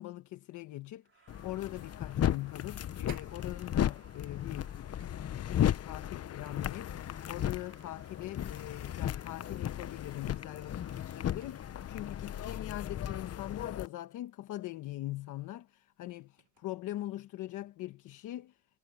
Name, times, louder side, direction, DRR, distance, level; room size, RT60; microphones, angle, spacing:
voice 1, 0.0-18.6, left 15 dB, 90° left, 1.2 m, -42 dB
sound 1, 1.0-5.6 6.9-12.4, right 6 dB, 45° right, 5.6 m, -64 dB
sound 2, 1.3-13.9, left 10 dB, 55° left, 0.9 m, -35 dB
sound 3, 2.9-4.0 5.0-6.9 7.2-8.5 9.1-10.1 11.4-11.9 12.2-13.2 14.8-14.9 15.4-15.5 15.9-16.7, right 13 dB, 80° right, 6.2 m, -62 dB
cardioid pair, 90°, 30 cm